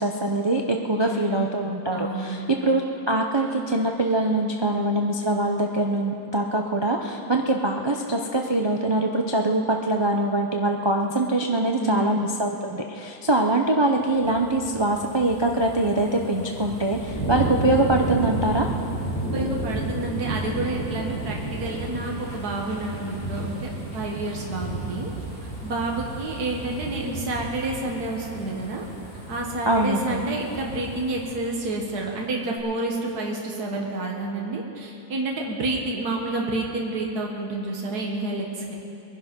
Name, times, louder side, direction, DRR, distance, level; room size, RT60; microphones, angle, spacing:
voice 1, 0.0-18.7 29.7-30.2, right 2 dB, 30° right, 1 dB, 0.4 m, -23 dB
voice 2, 0.9-1.6 1.9-2.5 11.8-12.3 19.3-25.1 25.6-28.9 29.3-38.7, right 2 dB, 75° right, -1 dB, 2.0 m, -29 dB
sound 1, 14.0-32.1 32.6-32.7, right 2 dB, 15° left, 4.4 m, -33 dB
22.0 x 11.0 x 5.4 m, 2.8 s
omnidirectional pair, 1.7 m